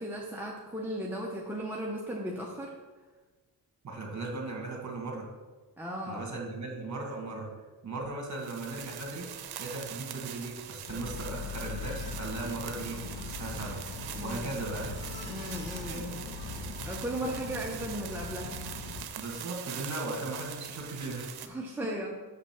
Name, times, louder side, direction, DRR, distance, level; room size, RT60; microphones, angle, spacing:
voice 1, 0.0-2.8 5.8-6.2 14.1-14.6 15.3-16.3 16.8-18.6 21.4-22.1, right 1 dB, 5° right, -2 dB, 0.8 m, -36 dB
voice 2, 3.8-5.3 6.1-7.5 7.8-9.3 9.6-13.0 13.2-13.8 14.2-14.9 15.8-16.0 19.2-21.3, right 2 dB, 45° right, 1 dB, 2.0 m, -37 dB
sound 1, 8.3-21.5, right 9 dB, 75° right, 0.7 m, -43 dB
Bark, 10.9-19.1, left 4 dB, 75° left, 0.9 m, -40 dB
6.0 x 5.8 x 6.0 m, 1.3 s
cardioid pair, 110°, 38 cm